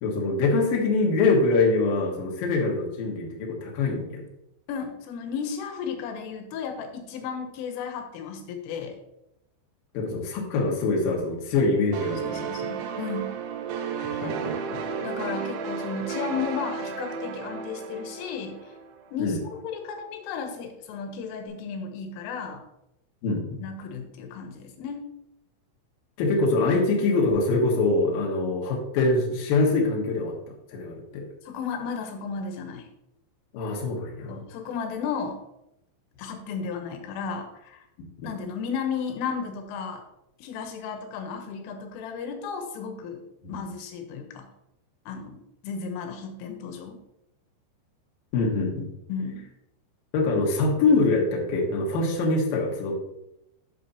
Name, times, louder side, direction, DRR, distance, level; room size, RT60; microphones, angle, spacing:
voice 1, 0.0-4.2 9.9-12.6 14.0-14.8 19.2-19.4 23.2-23.6 26.2-30.3 30.7-31.2 33.5-34.4 38.2-38.3 43.4-43.5 48.3-48.9 50.1-52.9, left 3 dB, 60° left, -1 dB, 2.6 m, -24 dB
voice 2, 4.7-9.0 12.1-13.4 14.2-14.4 15.0-18.7 19.1-19.4 19.6-22.6 23.6-25.0 31.4-32.9 34.3-35.4 36.2-37.8 38.2-40.0 40.4-43.2 43.5-44.5 45.1-47.0 49.1-49.5, left 6 dB, 85° left, 5 dB, 3.5 m, -34 dB
sound 1, 11.9-19.4, right 6 dB, 80° right, 2.4 m, -33 dB
8.6 x 7.5 x 2.8 m, 0.85 s
omnidirectional pair, 5.6 m